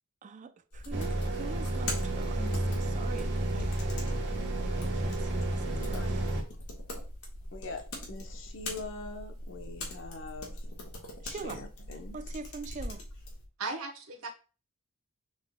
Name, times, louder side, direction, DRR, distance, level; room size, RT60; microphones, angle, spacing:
voice 1, 0.2-3.7 4.6-6.4 11.2-11.6 12.1-13.0, right 4 dB, 35° right, 0.3 m, -44 dB
sound 1, 0.7-13.5, left 1 dB, 90° left, 1.4 m, -42 dB
sound 2, 0.9-6.4, right 1 dB, 55° right, 1.0 m, -31 dB
voice 2, 5.7-6.3 7.5-10.6 11.2-12.2, left 3 dB, 60° left, 0.8 m, -43 dB
voice 3, 13.6-14.3, right 3 dB, 80° right, 1.0 m, -36 dB
6.3 x 3.7 x 2.2 m
head